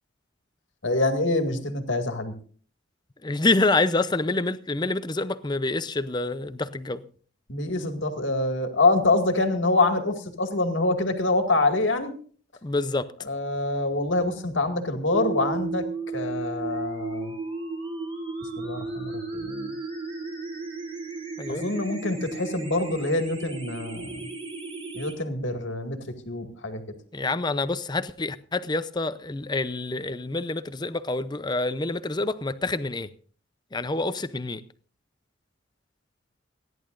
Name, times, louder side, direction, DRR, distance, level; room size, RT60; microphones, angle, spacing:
voice 1, 0.8-2.3 7.5-12.1 13.2-15.9 16.1-17.3 18.6-19.7 21.5-24.3 24.9-26.0 26.3-26.8, left 2 dB, 85° left, 2.1 m, -25 dB
voice 2, 3.2-7.0 12.6-13.1 21.4-21.6 27.1-33.1 33.7-34.6, left 2 dB, 25° left, 0.6 m, -27 dB
sound 1, 15.1-25.1, right 3 dB, 30° right, 3.9 m, -34 dB
29.5 x 11.0 x 2.6 m
head